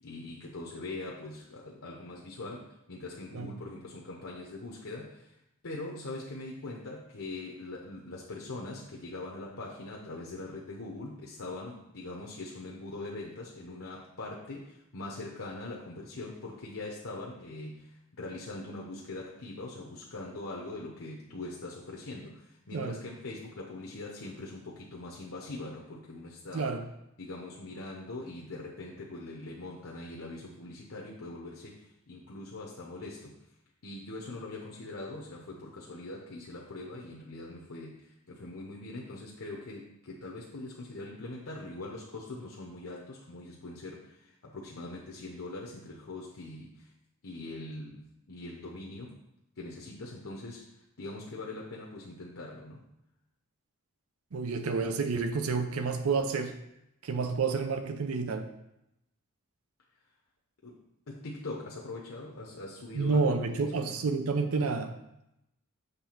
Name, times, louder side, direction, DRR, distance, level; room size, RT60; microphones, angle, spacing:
voice 1, 0.0-5.3 5.6-26.7 27.2-33.3 33.8-46.9 47.2-49.1 49.6-52.9 60.6-60.8 61.1-64.2, left 2 dB, 70° left, -2 dB, 0.9 m, -42 dB
voice 2, 26.5-26.8 54.3-56.5 57.0-58.5 62.9-64.9, right 4 dB, 80° right, 7 dB, 0.6 m, -29 dB
6.8 x 3.3 x 5.8 m, 0.84 s
head